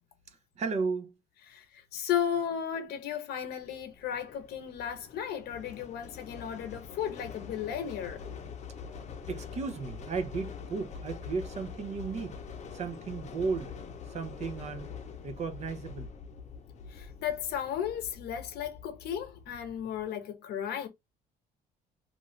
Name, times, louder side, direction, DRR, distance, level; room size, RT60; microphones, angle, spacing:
voice 1, 0.6-1.1 9.3-12.4 12.7-13.7 14.1-14.9 15.2-16.1, right 4 dB, 45° right, 0.6 m, -34 dB
voice 2, 1.5-8.2 16.9-20.9, left 9 dB, 75° left, 0.9 m, -34 dB
sound 1, 3.6-20.1, left 6 dB, 40° left, 0.7 m, -45 dB
2.5 x 2.4 x 3.1 m
cardioid pair, 110°, 17 cm